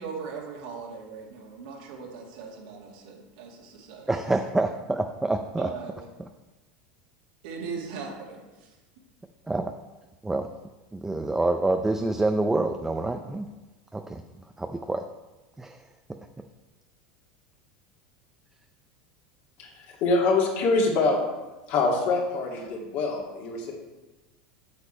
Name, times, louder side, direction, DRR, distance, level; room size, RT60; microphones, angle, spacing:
voice 1, 0.0-4.1 5.6-6.1 7.4-8.5, right 5 dB, 80° right, -1 dB, 2.2 m, -39 dB
voice 2, 4.1-5.7 9.5-9.7 10.2-10.5 10.9-13.5 13.9-14.2 14.6-15.0 15.6-16.2, right 2 dB, 10° right, 5 dB, 0.4 m, -27 dB
voice 3, 19.6-21.2 21.7-23.7, left 3 dB, 60° left, -1 dB, 2.2 m, -25 dB
8.1 x 6.9 x 4.4 m, 1.1 s
supercardioid pair, 115°, 4 cm